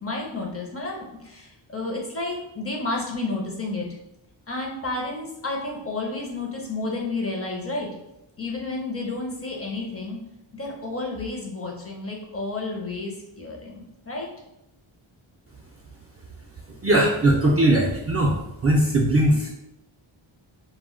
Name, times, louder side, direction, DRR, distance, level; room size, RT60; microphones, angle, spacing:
voice 1, 0.0-3.9 4.5-7.9 8.4-10.2 10.5-14.3, left 2 dB, 30° left, -1 dB, 0.5 m, -31 dB
voice 2, 16.8-18.3 18.6-19.5, right 1 dB, 35° right, -3 dB, 0.4 m, -19 dB
2.1 x 2.1 x 3.6 m, 0.87 s
wide cardioid pair, 105°, 48 cm